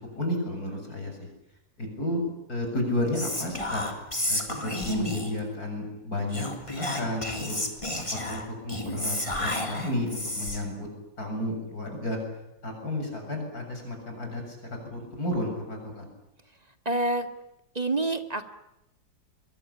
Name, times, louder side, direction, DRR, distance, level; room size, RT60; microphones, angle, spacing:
voice 1, 0.1-1.2 1.8-2.2 2.5-3.8 4.3-7.6 8.2-10.9 11.2-12.2 12.6-16.1, left 1 dB, 50° left, 3 dB, 7.9 m, -32 dB
Whispering, 3.1-5.4 6.3-10.7, left 1 dB, 15° left, 3.4 m, -31 dB
voice 2, 16.8-17.3 17.7-18.5, right 2 dB, 20° right, 8 dB, 1.7 m, -27 dB
24.0 x 22.5 x 10.0 m, 0.87 s
omnidirectional pair, 2.0 m